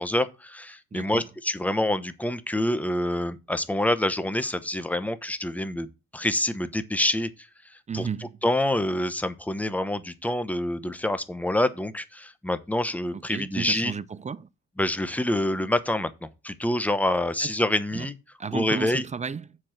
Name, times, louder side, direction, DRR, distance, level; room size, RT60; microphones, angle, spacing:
voice 1, 0.0-8.1 8.4-13.9 14.8-18.1 18.5-19.0, left 1 dB, 5° left, 0.9 m, -27 dB
voice 2, 0.9-1.2 7.9-8.4 13.1-14.5 17.4-17.5 17.9-18.1 18.4-19.6, right 6 dB, 25° right, 0.5 m, -33 dB
7.4 x 4.7 x 5.8 m
cardioid pair, 90°, 30 cm